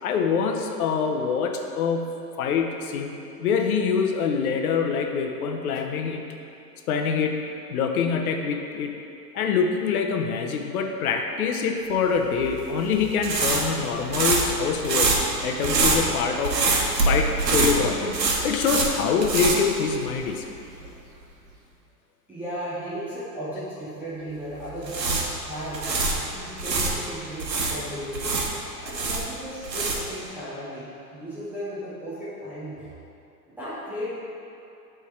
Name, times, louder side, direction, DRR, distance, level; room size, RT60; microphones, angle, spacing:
voice 1, 0.0-3.1 3.4-6.2 6.9-7.4 7.7-8.9 9.3-15.1 15.4-16.6 17.1-18.2 18.4-20.4, left 6 dB, 60° left, 3 dB, 0.9 m, -25 dB
sound 1, 12.4-20.4 20.7-20.9 24.6-27.0 27.4-30.2, right 3 dB, 90° right, 1.1 m, -25 dB
voice 2, 22.3-28.4 28.8-32.9 33.5-34.1, equal, 5° right, -12 dB, 0.3 m, -35 dB
8.4 x 3.6 x 4.5 m, 2.7 s
hypercardioid pair, 110°, 49 cm